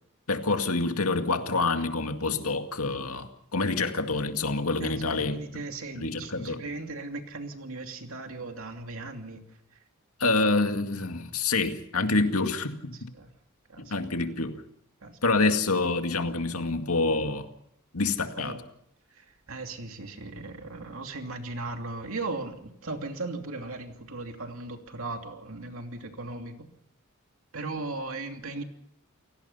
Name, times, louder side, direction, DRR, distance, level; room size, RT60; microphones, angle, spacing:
voice 1, 0.3-5.6 6.0-6.6 10.2-13.1 13.8-14.6 15.2-17.5 17.9-18.6, left 3 dB, 80° left, 2.2 m, -27 dB
voice 2, 4.8-9.4 13.2-13.3 13.7-13.9 15.0-15.4 18.4-18.6 19.1-26.7 27.5-28.6, right 3 dB, 65° right, 2.9 m, -37 dB
29.0 x 18.0 x 5.7 m
head